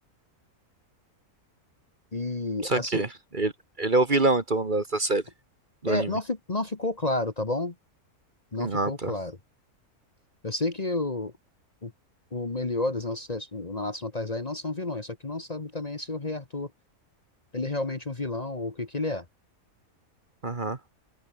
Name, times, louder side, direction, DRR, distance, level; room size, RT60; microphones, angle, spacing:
voice 1, 2.1-3.0 5.9-7.7 8.5-9.4 10.4-11.3 11.8-11.9 12.3-16.7 17.5-19.2, left 2 dB, 30° left, 1.4 m, -31 dB
voice 2, 2.6-3.1 3.3-3.5 3.8-5.2 5.8-6.2 8.6-9.1 20.4-20.8, right 2 dB, 35° right, 1.7 m, -25 dB
omnidirectional pair, 1.5 m